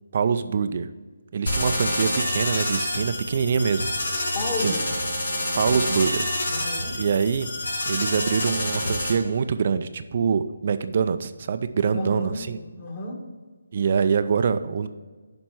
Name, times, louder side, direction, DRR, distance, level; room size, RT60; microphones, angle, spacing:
voice 1, 0.1-0.9 1.3-4.1 4.6-4.7 5.6-6.2 6.9-7.5 7.9-12.6 13.7-14.9, right 6 dB, 45° right, 11 dB, 0.5 m, -24 dB
sound 1, 1.5-9.1, left 1 dB, 70° left, 3.0 m, -27 dB
voice 2, 4.3-4.8 6.5-7.0 11.9-13.2, left 2 dB, 30° left, -2 dB, 1.8 m, -32 dB
7.3 x 5.2 x 6.2 m, 1.4 s
figure-of-eight pair, 155°, 0 cm